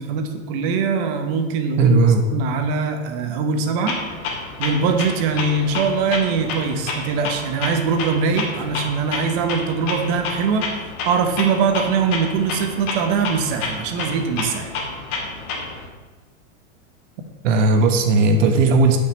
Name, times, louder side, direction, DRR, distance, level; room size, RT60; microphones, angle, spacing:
voice 1, 0.0-1.9 2.3-4.0 4.6-10.7 11.0-14.7, right 5 dB, 40° right, 5 dB, 1.2 m, -22 dB
voice 2, 1.8-2.2 17.4-19.0, right 3 dB, 65° right, 5 dB, 1.4 m, -16 dB
Clock, 3.9-15.9, left 3 dB, 60° left, 2.3 m, -30 dB
5.9 x 5.9 x 7.2 m, 1.2 s
supercardioid pair, 160°, 41 cm